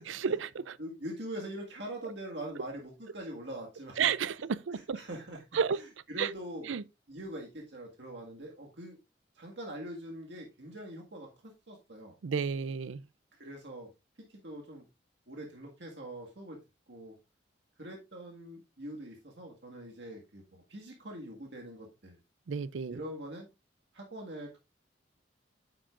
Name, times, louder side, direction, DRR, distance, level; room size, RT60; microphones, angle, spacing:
voice 1, 0.1-0.8 4.0-5.0 5.5-5.8 6.2-6.3 6.7-6.8 12.2-13.1 22.5-23.0, right 6 dB, 90° right, 0.5 m, -31 dB
voice 2, 0.8-4.0 4.7-5.4 6.1-6.7 7.1-9.0 9.4-12.1 13.3-13.9 14.3-14.9 15.3-16.6 16.9-17.1 17.8-22.2 22.9-23.5 23.9-24.6, right 1 dB, 65° right, 1.8 m, -43 dB
9.8 x 7.7 x 2.5 m
head